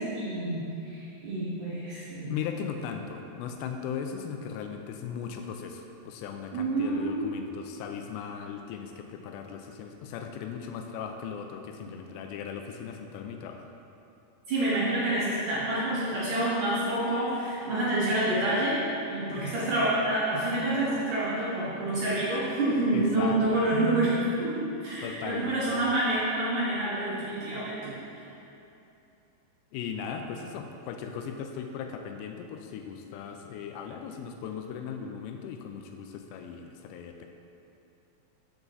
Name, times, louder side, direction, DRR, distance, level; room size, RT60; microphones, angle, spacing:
voice 1, 0.0-2.3 6.5-7.3 14.5-18.8 19.1-28.3, right 1 dB, 65° right, -9 dB, 2.2 m, -28 dB
voice 2, 2.3-13.7 22.9-23.6 25.0-25.8 29.7-37.3, left 7 dB, 85° left, 4 dB, 2.6 m, -38 dB
7.1 x 6.8 x 4.0 m, 2.8 s
omnidirectional pair, 5.0 m